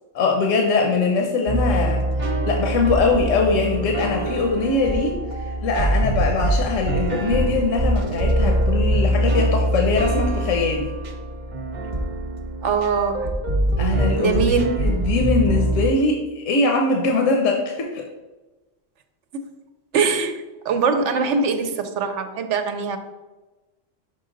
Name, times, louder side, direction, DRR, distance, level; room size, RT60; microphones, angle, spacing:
voice 1, 0.1-10.9 13.8-18.1, left 3 dB, 80° left, 2 dB, 1.1 m, -22 dB
sound 1, 1.5-15.9, right 1 dB, 40° right, 0.9 m, -23 dB
voice 2, 12.6-13.3 14.2-14.7 19.9-23.0, right 5 dB, 75° right, 8 dB, 0.9 m, -22 dB
5.8 x 5.4 x 3.8 m, 1.1 s
omnidirectional pair, 1.3 m